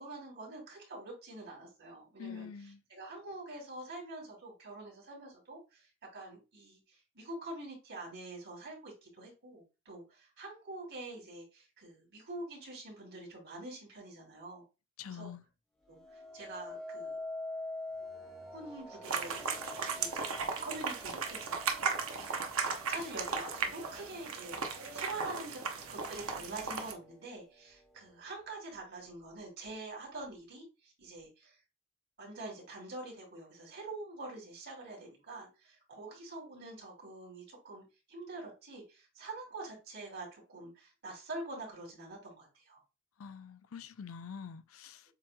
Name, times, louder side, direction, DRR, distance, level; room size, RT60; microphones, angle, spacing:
voice 1, 0.0-14.6 15.0-15.3 15.9-17.2 18.5-25.6 25.9-31.6 32.2-42.8, right 2 dB, 55° right, 2.8 m, -46 dB
voice 2, 2.2-2.8 15.0-15.4 43.2-45.1, left 7 dB, 75° left, 0.5 m, -45 dB
sound 1, 15.9-25.1 25.6-26.1, left 2 dB, ahead, 0.8 m, -46 dB
sound 2, 19.0-26.9, right 5 dB, 75° right, 0.8 m, -36 dB
7.4 x 3.1 x 2.2 m
head